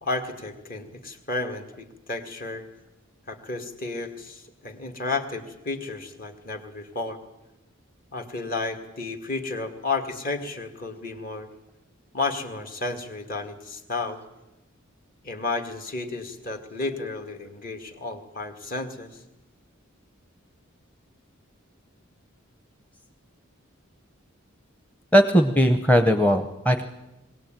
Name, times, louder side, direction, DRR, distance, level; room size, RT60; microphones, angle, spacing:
voice 1, 0.0-2.7 3.3-7.2 8.1-11.5 12.1-14.2 15.2-19.2, left 3 dB, 45° left, 5 dB, 2.2 m, -32 dB
voice 2, 25.1-26.8, equal, 5° left, 6 dB, 0.9 m, -19 dB
21.5 x 17.5 x 9.1 m, 0.98 s
head